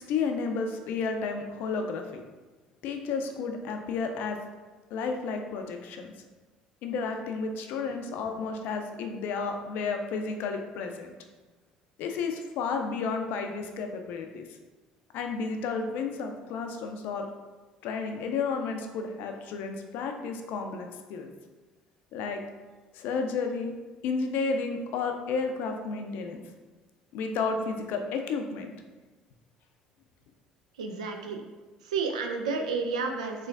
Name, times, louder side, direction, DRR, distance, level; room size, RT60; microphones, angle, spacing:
voice 1, 0.0-2.2 2.8-4.4 4.9-6.1 6.8-11.1 12.0-14.5 15.1-17.3 17.8-21.3 22.1-22.4 22.9-23.8 24.0-26.4 27.1-28.7, left 4 dB, 60° left, 5 dB, 0.4 m, -32 dB
voice 2, 30.8-31.4 31.8-33.5, right 4 dB, 80° right, 4 dB, 0.4 m, -31 dB
3.7 x 3.3 x 2.4 m, 1.3 s
hypercardioid pair, 60°, 4 cm